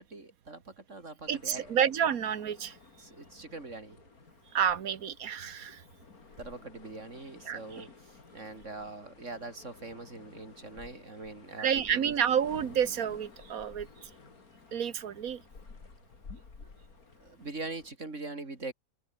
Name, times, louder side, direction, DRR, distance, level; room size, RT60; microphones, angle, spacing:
voice 1, 0.0-1.8 3.0-4.0 6.4-12.1 16.6-16.7 17.2-18.7, right 3 dB, 50° right, 4.1 m, -43 dB
sound 1, 1.2-17.9, left 4 dB, 65° left, 3.1 m, -53 dB
voice 2, 1.3-2.8 4.5-5.8 7.5-7.8 11.6-14.1 14.7-15.4, right 8 dB, 65° right, 1.6 m, -30 dB
open air
omnidirectional pair, 1.7 m